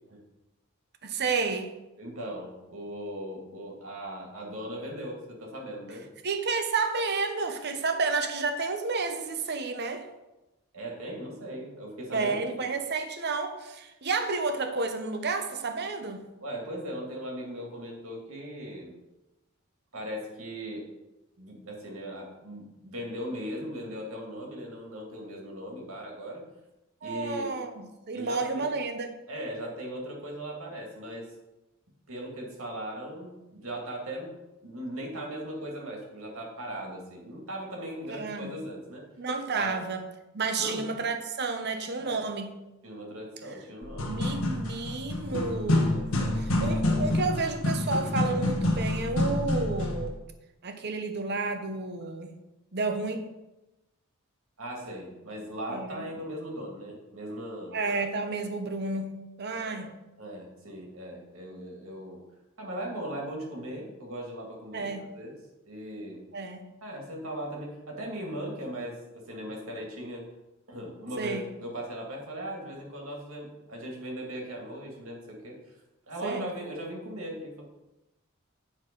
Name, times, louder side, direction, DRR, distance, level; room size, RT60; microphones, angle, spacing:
voice 1, 1.0-1.7 6.2-10.1 12.1-16.3 27.0-29.1 38.1-38.6 39.2-40.0 40.3-42.5 44.0-50.2 50.6-52.4 52.7-53.3 55.7-56.0 57.7-59.9 64.7-65.1 66.3-66.7 71.2-71.4 76.2-76.5, right 4 dB, 50° right, 7 dB, 0.8 m, -31 dB
voice 2, 2.0-6.1 10.7-12.7 16.4-18.9 19.9-20.9 21.4-26.4 27.0-27.5 28.1-28.7 29.3-31.3 32.1-34.3 34.6-39.1 39.6-39.8 40.6-40.8 42.0-42.2 42.8-44.2 45.2-45.4 46.0-47.1 54.6-57.8 59.6-59.9 60.2-62.2 62.6-65.3 65.6-66.2 66.8-70.2 70.7-75.6 76.1-77.6, right 1 dB, 75° right, 0 dB, 2.3 m, -38 dB
sound 1, 43.8-50.1, left 1 dB, 80° left, 1.4 m, -27 dB
9.3 x 4.2 x 5.3 m, 0.98 s
head